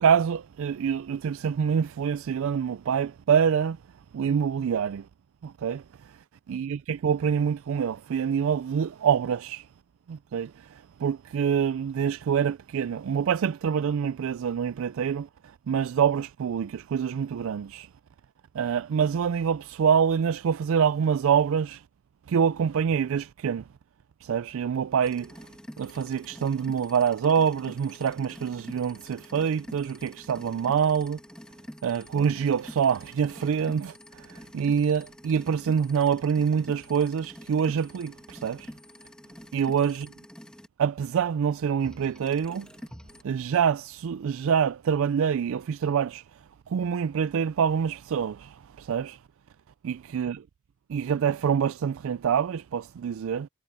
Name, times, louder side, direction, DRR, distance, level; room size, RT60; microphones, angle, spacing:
voice 1, 0.0-3.8 4.1-5.1 5.4-6.2 6.5-9.7 10.1-17.9 18.5-21.8 22.3-23.6 24.2-25.4 25.8-31.2 31.8-38.7 39.5-40.1 40.8-42.7 43.2-46.2 46.7-49.2 49.8-50.4 50.9-53.5, right 7 dB, 70° right, 0.4 m, -26 dB
sound 1, 25.0-40.7 41.8-43.2, equal, 5° left, 2.0 m, -46 dB
head